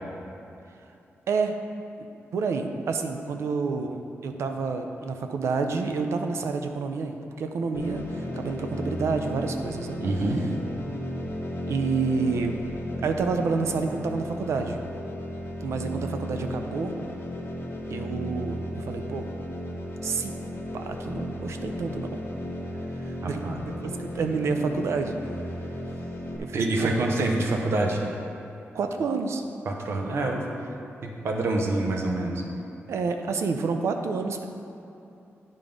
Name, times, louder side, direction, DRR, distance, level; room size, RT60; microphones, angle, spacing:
voice 1, 1.3-1.6 2.0-2.1 2.3-10.0 10.3-10.4 11.7-12.6 13.0-14.8 15.6-16.9 17.9-19.3 20.0-20.3 20.7-22.2 23.0-25.1 26.4-26.9 28.7-29.4 32.9-34.5, right 4 dB, 90° right, 5 dB, 0.5 m, -29 dB
sound 1, 7.7-26.4, equal, 55° left, 0.8 m, -35 dB
voice 2, 10.0-10.4 23.2-23.6 26.5-28.0 29.7-30.4 31.0-32.4, right 2 dB, 65° right, 1 dB, 0.9 m, -26 dB
9.7 x 3.7 x 5.2 m, 2.7 s
wide cardioid pair, 155°, 5 cm